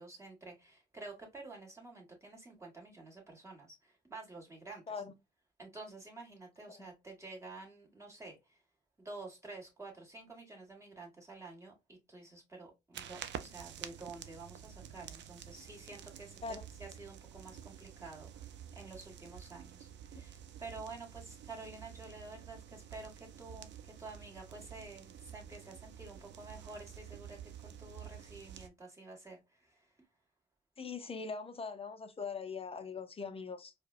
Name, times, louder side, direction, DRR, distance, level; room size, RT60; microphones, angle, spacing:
voice 1, 0.0-4.9 5.6-8.6 9.0-29.9, right 3 dB, 15° right, 1.7 m, -50 dB
sound 1, 12.9-28.7, right 9 dB, 65° right, 0.5 m, -50 dB
voice 2, 30.8-33.7, left 5 dB, 30° left, 0.6 m, -41 dB
4.6 x 2.2 x 2.4 m
cardioid pair, 90°, 20 cm